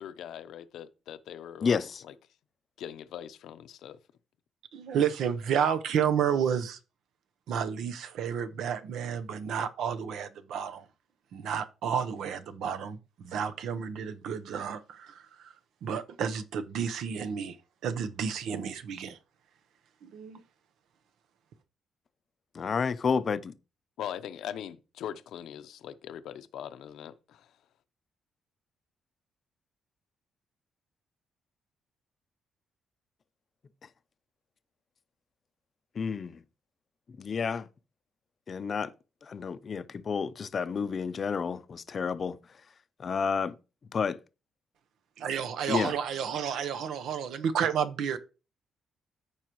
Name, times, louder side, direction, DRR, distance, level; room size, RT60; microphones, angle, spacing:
voice 1, 0.0-2.1 2.8-4.0 24.0-27.5, left 10 dB, 75° left, 0.7 m, -41 dB
voice 2, 1.6-2.0 22.5-23.5 36.0-36.4 37.2-37.7 38.5-38.9 39.3-42.4 43.0-43.5 43.9-44.2 45.7-45.9, left 6 dB, 40° left, 0.5 m, -30 dB
voice 3, 4.7-6.8 7.5-10.8 11.3-15.5 15.8-17.6 17.8-19.2 20.0-20.4 45.2-48.2, right 7 dB, 75° right, 0.9 m, -31 dB
14.0 x 4.9 x 3.0 m
cardioid pair, 135°, 0 cm